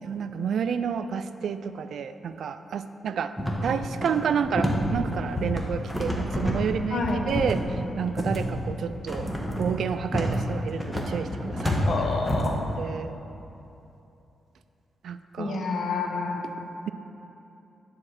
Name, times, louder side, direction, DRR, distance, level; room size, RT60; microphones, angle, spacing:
voice 1, 0.0-3.3 3.6-9.3 9.6-11.9 12.8-13.2 15.0-15.6, right 7 dB, 75° right, 11 dB, 0.3 m, -30 dB
sound 1, 3.4-12.6, equal, 5° left, 1.0 m, -29 dB
voice 2, 6.9-7.2 11.9-12.6 15.4-16.4, left 3 dB, 60° left, 1 dB, 1.0 m, -28 dB
9.7 x 4.3 x 6.4 m, 2.9 s
wide cardioid pair, 125°, 0 cm